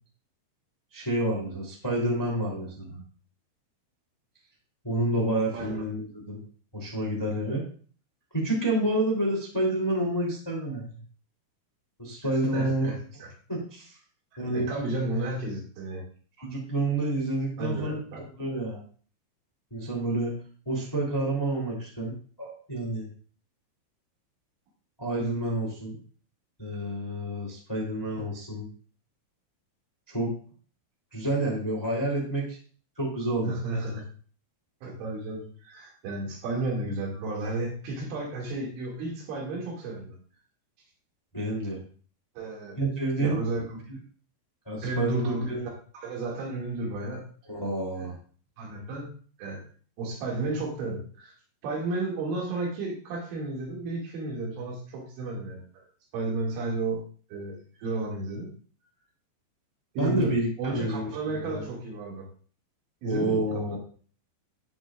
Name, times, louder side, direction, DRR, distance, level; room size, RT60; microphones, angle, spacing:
voice 1, 0.9-3.0 4.8-6.4 6.7-7.6 8.3-11.0 12.0-12.9 13.5-14.0 14.4-14.7 16.4-18.0 18.4-18.8 19.7-20.3 20.6-22.1 22.4-23.1 25.0-25.9 26.6-28.7 30.1-30.3 31.1-32.6 33.0-33.5 41.3-41.8 42.8-43.4 44.7-45.6 47.5-48.1 60.0-61.1 61.4-61.6 63.0-63.8, right 1 dB, 10° left, -3 dB, 1.7 m, -29 dB
voice 2, 12.5-13.3 14.3-16.0 17.6-18.2 33.4-34.1 34.8-40.2 42.4-42.8 43.2-43.8 44.8-45.5 45.9-47.3 48.0-48.1 48.6-49.1 49.4-49.6 50.0-51.4 51.6-55.6 56.1-57.0 57.3-58.5 59.9-60.3 60.6-62.2 63.0-63.4 63.7-63.8, right 2 dB, 75° right, -2 dB, 4.8 m, -32 dB
16.5 x 6.2 x 2.5 m, 0.42 s
omnidirectional pair, 5.7 m